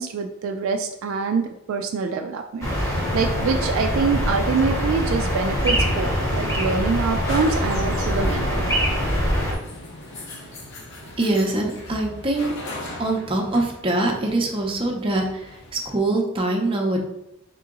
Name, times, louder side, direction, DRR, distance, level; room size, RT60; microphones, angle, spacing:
voice 1, 0.0-8.8, right 4 dB, 65° right, 5 dB, 0.3 m, -25 dB
sound 1, 2.6-9.5, equal, 15° left, 0.9 m, -23 dB
sound 2, 6.9-15.9, left 1 dB, 55° left, 0.9 m, -39 dB
voice 2, 11.2-12.5 13.0-17.1, right 2 dB, 25° right, 0 dB, 0.6 m, -23 dB
3.7 x 2.8 x 3.7 m, 0.88 s
head